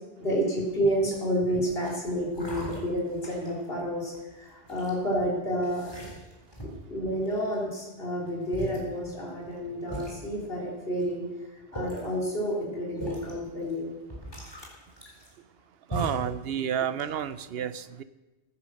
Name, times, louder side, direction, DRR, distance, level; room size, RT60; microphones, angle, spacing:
voice 1, 0.2-5.8 6.6-11.3 11.7-13.9, equal, 60° left, -4 dB, 3.7 m, -30 dB
sound 1, 0.9-1.3 1.8-1.9 2.3-3.6 4.1-4.9 5.6-6.9 7.3-7.8 8.3-8.4 8.5-8.8 9.5-9.6 9.9-10.1 11.0-11.1 11.6-12.1 13.0-13.3 13.7-13.8 14.1-15.6 15.9-16.3 16.8-17.4, right 1 dB, 20° left, 3.8 m, -39 dB
voice 2, 15.9-18.0, right 8 dB, 65° right, 14 dB, 0.9 m, -30 dB
15.5 x 9.6 x 6.5 m, 1.1 s
omnidirectional pair, 1.1 m